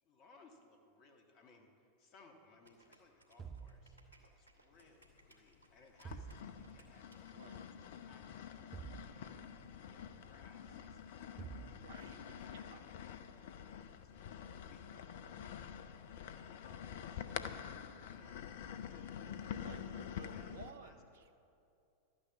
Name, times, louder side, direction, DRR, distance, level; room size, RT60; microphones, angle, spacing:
voice 1, 0.0-7.3 8.0-8.7 9.0-12.8 13.7-15.5 16.2-17.6 18.0-18.4 19.5-20.9 21.3-21.4, left 3 dB, 40° left, 3 dB, 1.5 m, -65 dB
sound 1, 2.6-8.0, right 1 dB, 80° left, 1.6 m, -67 dB
sound 2, 3.4-4.5 6.0-7.0 8.7-9.8 11.4-12.4, right 6 dB, 25° right, 0.6 m, -50 dB
sound 3, 4.9-5.6 6.1-20.7, left 8 dB, 55° left, 0.6 m, -47 dB
voice 2, 7.3-7.7 11.8-12.8 19.6-21.3, right 5 dB, 60° right, 9 dB, 0.7 m, -56 dB
12.0 x 9.4 x 7.4 m, 2.6 s
figure-of-eight pair, 90°, 0 cm